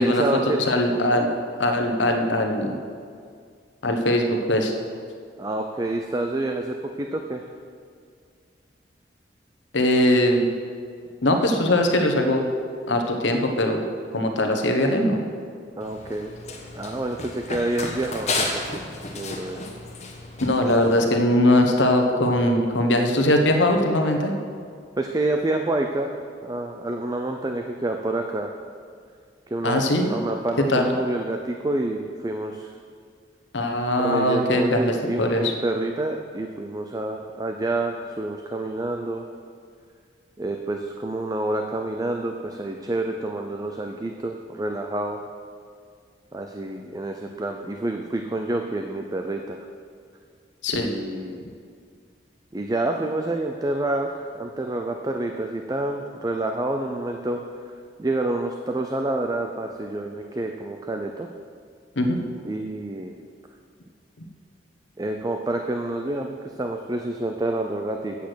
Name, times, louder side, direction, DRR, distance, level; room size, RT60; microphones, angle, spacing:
voice 1, 0.0-0.6 5.4-7.4 15.8-16.3 16.8-18.8 19.1-19.6 25.0-26.2 26.4-28.5 29.5-32.7 33.9-39.2 40.4-45.2 46.3-49.6 50.7-51.4 52.5-57.4 58.0-61.3 62.4-63.2 65.0-68.2, right 2 dB, 20° right, 4 dB, 0.4 m, -28 dB
voice 2, 0.7-1.3 1.6-2.7 3.8-4.7 9.7-10.5 11.2-12.5 12.9-13.8 14.1-15.2 20.4-24.4 29.6-30.1 30.7-30.9 33.5-35.5 50.6-50.9 62.0-62.2, left 1 dB, 90° left, 4 dB, 1.1 m, -21 dB
Run, 15.8-21.0, left 3 dB, 40° left, 1.2 m, -32 dB
8.3 x 8.3 x 6.3 m, 2.1 s
head